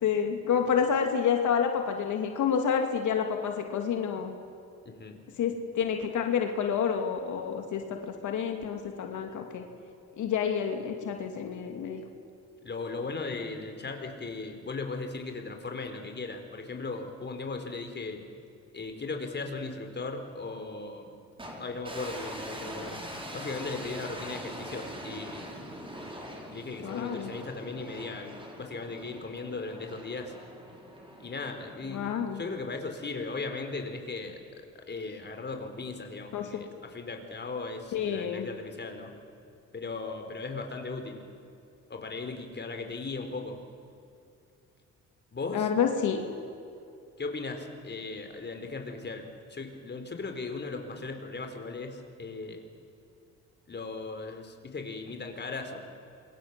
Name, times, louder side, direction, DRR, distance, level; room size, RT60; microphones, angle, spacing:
voice 1, 0.0-4.4 5.4-9.6 10.2-12.0 26.8-27.3 31.9-32.4 36.3-36.6 37.9-38.5 45.5-46.2, left 7 dB, 75° left, 4 dB, 2.5 m, -29 dB
voice 2, 4.8-5.2 12.6-18.2 18.7-21.1 21.6-23.0 23.3-25.5 26.5-30.3 31.2-34.4 34.7-39.1 39.7-41.2 41.9-43.6 45.3-45.7 47.2-52.6 53.7-55.8, left 3 dB, 35° left, 5 dB, 4.2 m, -37 dB
sound 1, 21.4-32.6, equal, 15° right, 5.3 m, -43 dB
27.5 x 24.0 x 7.6 m, 2.5 s
cardioid pair, 90°, 30 cm